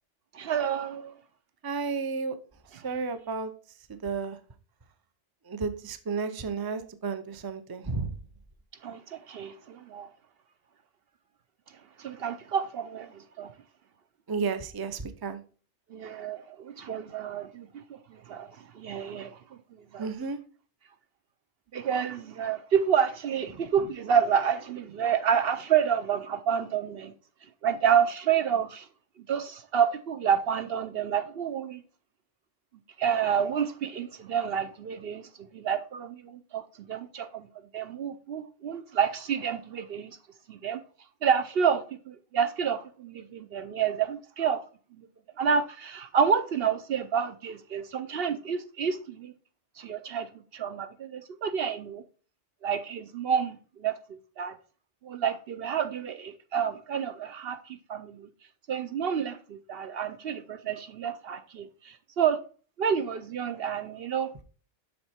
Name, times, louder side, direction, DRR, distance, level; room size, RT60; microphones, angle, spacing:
voice 1, 0.3-1.1 8.8-10.1 12.0-13.5 15.9-19.6 19.9-20.1 21.7-27.1 27.6-28.9 29.3-31.8 33.0-35.3 35.5-37.5 37.7-40.2 40.5-40.8 41.2-44.6 44.9-45.1 45.4-49.3 49.8-52.0 52.6-54.6 55.0-58.3 58.7-62.4 62.8-64.3, right 7 dB, 65° right, 0.8 m, -29 dB
voice 2, 1.6-2.4 2.8-3.5 3.9-4.4 5.5-8.1 14.3-15.4 20.0-20.4, right 4 dB, 25° right, 0.5 m, -32 dB
7.7 x 5.8 x 4.3 m
omnidirectional pair, 1.2 m